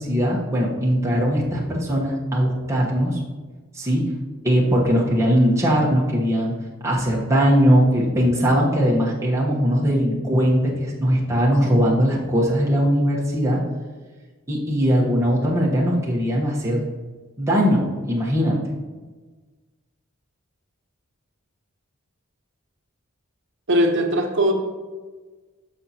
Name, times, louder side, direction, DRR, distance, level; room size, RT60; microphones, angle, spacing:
voice 1, 0.0-3.2 3.7-4.0 4.4-6.5 6.8-13.6 14.5-16.8 17.4-18.6, equal, 15° right, -4 dB, 1.1 m, -20 dB
voice 2, 23.7-24.5, equal, 60° right, 3 dB, 1.0 m, -19 dB
13.0 x 5.3 x 2.9 m, 1.3 s
head